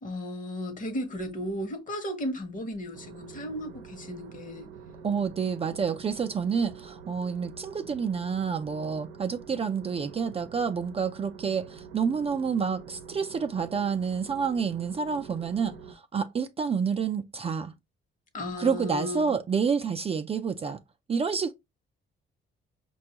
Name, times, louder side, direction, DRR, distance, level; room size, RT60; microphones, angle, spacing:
voice 1, 0.0-4.7 18.3-19.4, left 1 dB, 40° left, 1.0 m, -35 dB
sound 1, 2.9-15.9, right 6 dB, 85° right, 0.6 m, -46 dB
voice 2, 5.0-17.7 18.6-20.8 21.1-21.5, right 6 dB, 30° right, 0.4 m, -29 dB
4.9 x 2.3 x 2.8 m
cardioid pair, 90°, 20 cm